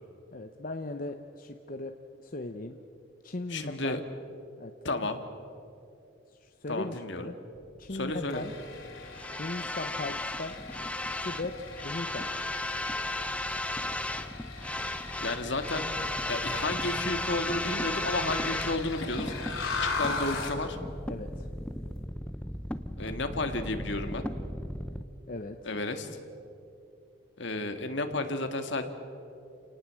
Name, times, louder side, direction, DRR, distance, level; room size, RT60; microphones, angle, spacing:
voice 1, 0.3-2.0 2.2-2.8 3.2-4.0 4.6-5.0 6.3-7.3 7.8-8.5 9.4-10.6 11.2-12.3 21.1-21.5 25.3-25.7, left 2 dB, 45° left, 6 dB, 0.8 m, -38 dB
voice 2, 3.5-4.0 4.8-5.2 6.7-7.3 7.9-8.4 15.2-15.8 16.3-19.3 19.8-20.8 23.0-24.2 25.6-26.1 27.4-28.9, left 2 dB, 60° left, 7 dB, 1.9 m, -32 dB
sound 1, 7.6-25.0, left 1 dB, 5° left, 0.7 m, -35 dB
Nespresso machine brewing coffee, 8.3-20.6, left 4 dB, 90° left, 3.5 m, -39 dB
29.0 x 19.0 x 7.6 m, 2.7 s
head